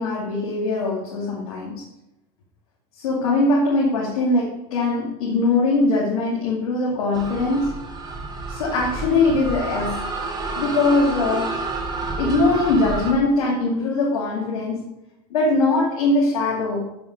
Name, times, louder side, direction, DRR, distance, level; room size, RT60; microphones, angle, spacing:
voice 1, 0.0-1.8 3.0-7.8 8.5-10.1 10.5-11.6 12.2-14.8 15.3-16.9, left 2 dB, 90° left, -4 dB, 2.4 m, -21 dB
sound 1, 7.1-13.1, right 3 dB, 25° right, 2.0 m, -30 dB
7.9 x 7.7 x 5.2 m, 0.89 s
supercardioid pair, 110°, 18 cm